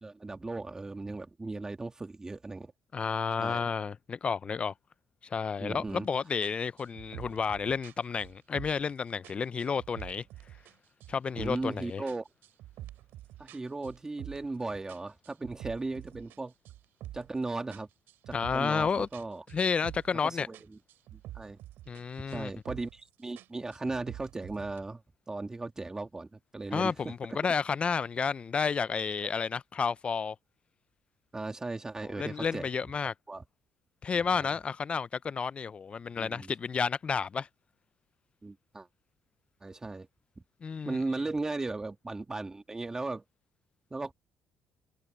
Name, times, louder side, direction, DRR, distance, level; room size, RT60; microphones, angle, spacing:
voice 1, 0.0-2.7 3.4-3.6 5.6-6.1 11.4-12.3 13.4-16.5 17.1-17.9 18.3-19.4 20.2-20.6 21.1-21.6 22.3-25.0 25.3-27.1 28.8-28.9 31.3-32.7 33.3-33.4 34.1-34.5 36.2-36.5 38.4-38.9 39.6-40.1 40.9-43.2 43.9-44.1, right 3 dB, 15° right, 2.1 m, -37 dB
voice 2, 2.9-4.7 5.2-10.2 11.1-12.0 18.3-19.1 19.5-20.5 21.9-22.5 26.7-30.4 32.0-33.1 34.0-37.5 40.6-41.0, left 6 dB, 30° left, 0.3 m, -31 dB
sound 1, 5.9-6.1 6.4-8.9 9.2-10.7 11.0-11.7 12.1-14.6 14.9-17.4 17.7-20.3 20.5-22.0 22.3-23.0 23.4-24.8, right 14 dB, 80° right, 3.1 m, -47 dB
cardioid pair, 110°, 4 cm